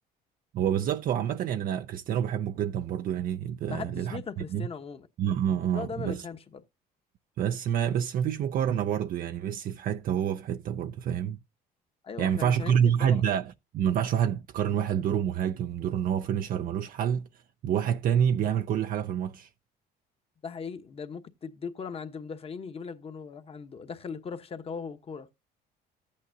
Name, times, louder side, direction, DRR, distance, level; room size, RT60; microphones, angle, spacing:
voice 1, 0.5-4.2 4.5-4.7 5.2-6.2 7.4-11.4 12.2-17.3 17.6-19.5, right 9 dB, 55° right, 0.5 m, -27 dB
voice 2, 3.7-5.1 5.6-6.6 12.0-13.2 20.4-25.3, left 5 dB, 35° left, 1.1 m, -39 dB
13.0 x 8.5 x 2.7 m
cardioid pair, 110°, 17 cm